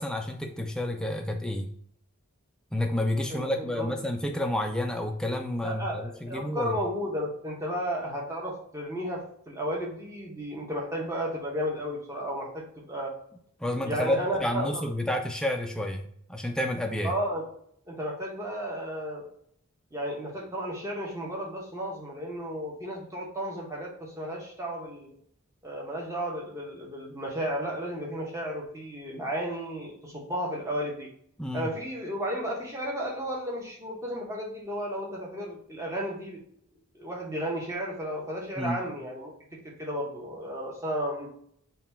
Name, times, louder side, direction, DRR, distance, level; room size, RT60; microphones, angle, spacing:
voice 1, 0.0-1.7 2.7-6.8 13.6-17.1 31.4-31.7 38.6-38.8, left 1 dB, 5° left, 4 dB, 0.3 m, -30 dB
voice 2, 3.3-3.9 5.6-13.1 13.8-14.8 17.0-17.4 17.9-19.2 19.9-25.1 25.6-31.1 31.5-36.4 36.9-39.3 39.8-41.3, equal, 15° right, -2 dB, 0.8 m, -33 dB
3.8 x 2.3 x 4.1 m, 0.67 s
head